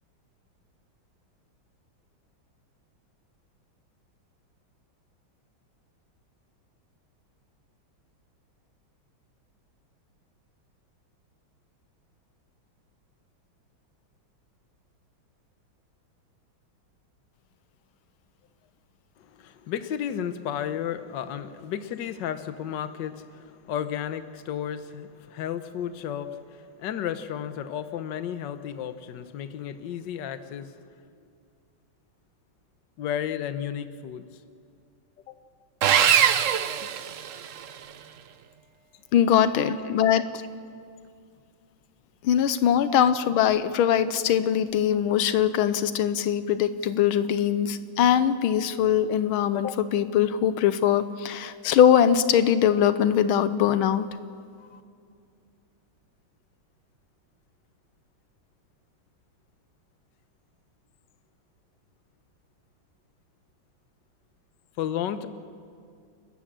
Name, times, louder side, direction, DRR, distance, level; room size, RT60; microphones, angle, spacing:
voice 1, 19.2-30.9 33.0-34.3 35.3-35.4 64.8-65.3, left 9 dB, 65° left, 11 dB, 1.5 m, -33 dB
Sawing, 35.8-37.7, right 9 dB, 70° right, 0.7 m, -22 dB
voice 2, 39.1-40.2 42.2-54.1, left 9 dB, 85° left, 12 dB, 1.6 m, -22 dB
30.0 x 13.5 x 7.5 m, 2.3 s
omnidirectional pair, 2.2 m